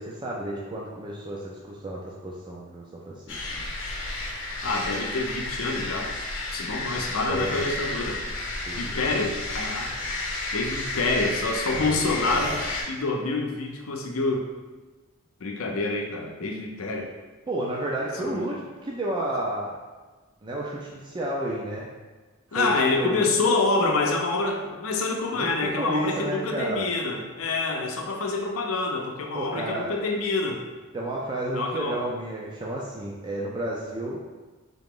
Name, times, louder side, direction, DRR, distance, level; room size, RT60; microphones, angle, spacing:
voice 1, 0.0-3.7 7.0-7.7 8.7-9.3 10.0-10.2 11.7-12.6 17.5-19.8 20.4-21.9 22.5-24.1 25.4-26.9 29.3-30.1 30.9-34.2, right 1 dB, 20° right, -3 dB, 0.4 m, -32 dB
sound 1, 3.3-12.8, left 2 dB, 65° left, 0.9 m, -32 dB
voice 2, 4.6-6.1 6.5-8.2 8.7-10.0 10.5-12.6 12.9-14.5 15.4-17.1 18.3-18.4 22.5-30.6 31.5-32.0, left 3 dB, 90° left, 2 dB, 0.6 m, -27 dB
3.7 x 2.9 x 3.7 m, 1.3 s
head